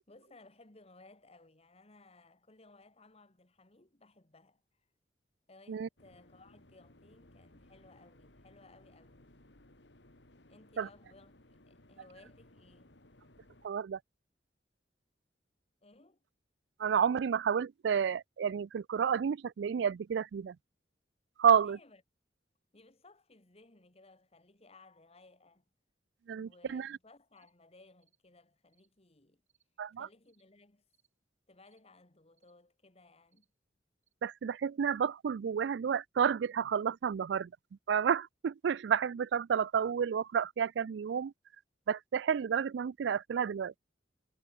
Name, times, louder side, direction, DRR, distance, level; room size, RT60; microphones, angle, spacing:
voice 1, 0.1-4.6 5.5-9.3 10.5-13.0 15.8-16.2 21.5-22.0 22.7-25.6 26.4-29.4 29.9-30.8 31.5-33.5, left 2 dB, 35° left, 2.0 m, -60 dB
sound 1, 6.0-13.7, left 1 dB, 75° left, 3.2 m, -61 dB
voice 2, 13.6-14.0 16.8-20.6 21.4-21.8 26.3-27.0 29.8-30.1 34.2-37.5 37.9-41.3 41.9-43.7, right 7 dB, 70° right, 0.4 m, -30 dB
sound 2, 27.3-27.5 28.0-28.2 28.7-28.9 29.5-29.7 30.2-30.5 30.9-31.1 31.6-31.8 32.3-32.5 33.3-33.5 34.0-34.1, right 10 dB, 40° right, 7.2 m, -77 dB
head